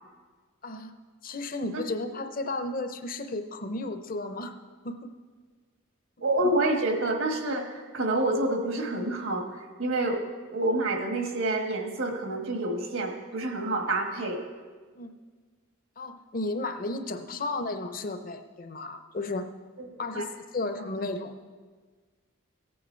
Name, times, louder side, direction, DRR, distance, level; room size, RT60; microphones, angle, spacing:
voice 1, 0.6-0.9 1.2-4.5 4.8-5.1 15.0-15.1 16.0-19.5 20.0-20.3 20.5-21.3, left 2 dB, 40° left, 9 dB, 0.6 m, -33 dB
voice 2, 6.2-10.2 10.5-14.4 19.8-19.9 20.1-20.2, right 2 dB, 70° right, 3 dB, 1.5 m, -28 dB
15.0 x 8.6 x 4.5 m, 1.5 s
head